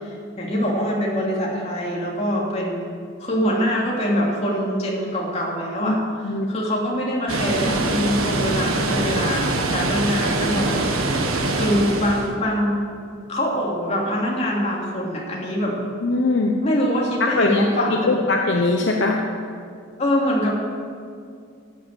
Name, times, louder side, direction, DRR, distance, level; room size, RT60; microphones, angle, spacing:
voice 1, 0.0-2.9 3.2-6.0 6.5-12.8 13.3-15.7 16.6-18.2 20.0-20.5, equal, 30° left, -3 dB, 2.9 m, -24 dB
Water, 7.3-12.3, right 2 dB, 75° right, 1.5 m, -23 dB
voice 2, 16.0-16.5 17.4-19.2, left 3 dB, 55° left, 1 dB, 1.0 m, -21 dB
12.5 x 10.0 x 8.1 m, 2.3 s
head